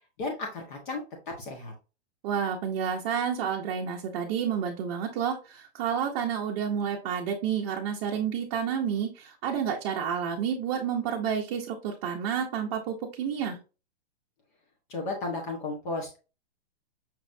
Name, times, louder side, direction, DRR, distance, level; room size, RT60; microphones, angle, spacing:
voice 1, 0.2-1.7 14.9-16.2, left 3 dB, 45° left, 1 dB, 1.4 m, -34 dB
voice 2, 2.2-13.6, right 8 dB, 30° right, -1 dB, 0.7 m, -30 dB
6.1 x 3.1 x 2.6 m, 0.32 s
hypercardioid pair, 145°, 34 cm